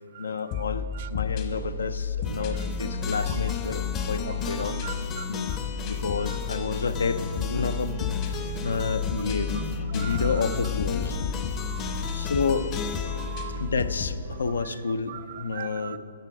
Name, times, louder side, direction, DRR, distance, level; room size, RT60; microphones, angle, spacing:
voice 1, 0.2-4.8 5.3-5.5 5.9-8.1 8.6-9.7 9.9-11.2 12.1-12.7 13.5-16.0, left 4 dB, 80° left, 12 dB, 0.5 m, -30 dB
sound 1, 0.5-14.2, left 6 dB, 40° left, 1.0 m, -32 dB
sound 2, 2.2-14.5, left 5 dB, 25° left, 0.6 m, -36 dB
voice 2, 4.8-5.2 9.9-10.2 11.6-12.1 13.1-13.6 15.1-15.2 15.5-16.0, right 11 dB, 45° right, 12 dB, 0.4 m, -40 dB
12.0 x 6.7 x 4.8 m, 2.7 s
hypercardioid pair, 135°, 0 cm